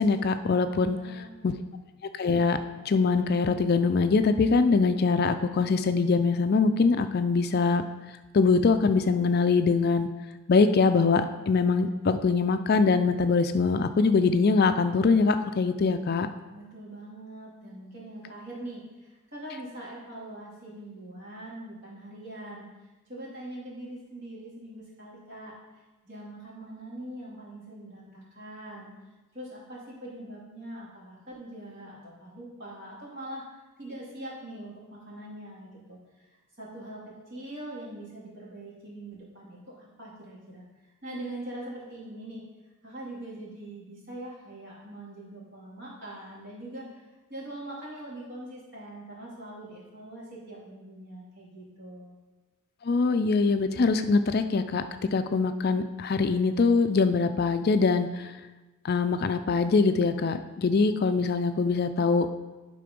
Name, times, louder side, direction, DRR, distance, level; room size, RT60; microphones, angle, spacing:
voice 1, 0.0-1.0 1.4-1.5 2.2-2.6 2.9-7.8 8.3-10.1 10.5-16.3 52.8-54.8 55.1-58.3 58.8-62.4, left 4 dB, 45° left, 9 dB, 0.4 m, -23 dB
voice 2, 0.8-1.6 16.5-22.7 23.1-25.5 26.0-28.9 29.3-33.4 33.8-36.2 36.6-40.6 41.0-42.4 42.8-52.2, right 1 dB, 55° right, -6 dB, 2.7 m, -42 dB
11.0 x 3.8 x 5.2 m, 1.2 s
head